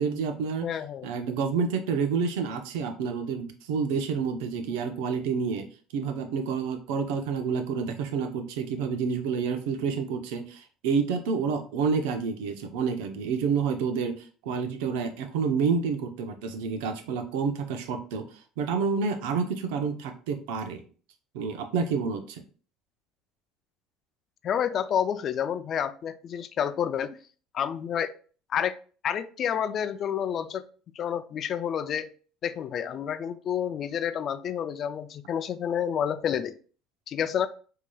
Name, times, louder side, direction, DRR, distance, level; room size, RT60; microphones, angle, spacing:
voice 1, 0.0-0.7 1.0-5.6 5.9-18.3 18.6-20.8 21.3-22.4, right 5 dB, 85° right, 7 dB, 0.6 m, -29 dB
voice 2, 0.6-1.1 24.4-27.2 27.5-28.1 28.5-28.7 29.0-30.6 31.0-32.1 32.4-36.5 37.1-37.5, left 8 dB, 45° left, 13 dB, 0.3 m, -29 dB
4.6 x 2.8 x 2.3 m, 0.40 s
supercardioid pair, 105°, 0 cm